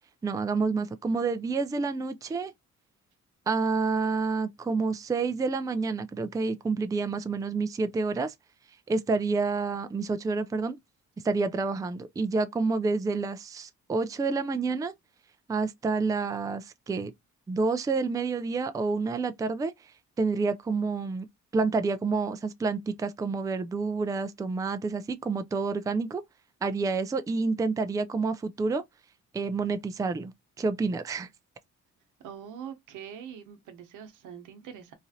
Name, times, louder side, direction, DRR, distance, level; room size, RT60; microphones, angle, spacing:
voice 1, 0.2-2.5 3.5-8.3 8.9-10.8 11.2-14.9 15.5-17.1 17.5-19.7 20.2-21.3 21.5-26.2 26.6-28.8 29.3-30.3 30.6-31.3, right 4 dB, 10° right, 0.3 m, -28 dB
voice 2, 32.2-34.9, right 8 dB, 85° right, 0.9 m, -43 dB
3.0 x 2.5 x 2.6 m
cardioid pair, 90°, 30 cm